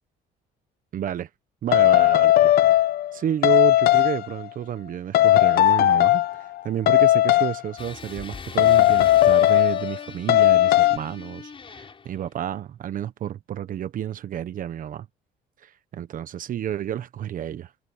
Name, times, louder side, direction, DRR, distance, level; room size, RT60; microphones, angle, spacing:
voice 1, 0.9-1.3 1.6-2.5 3.1-15.1 15.6-17.7, right 10 dB, 55° right, 1.2 m, -30 dB
sound 1, 1.7-3.1 3.4-4.3 5.1-6.4 6.9-7.6 8.6-10.0 10.3-11.0, left 14 dB, 65° left, 0.9 m, -17 dB
sound 2, 7.8-12.2, left 5 dB, 30° left, 6.6 m, -41 dB
cardioid pair, 110°, 17 cm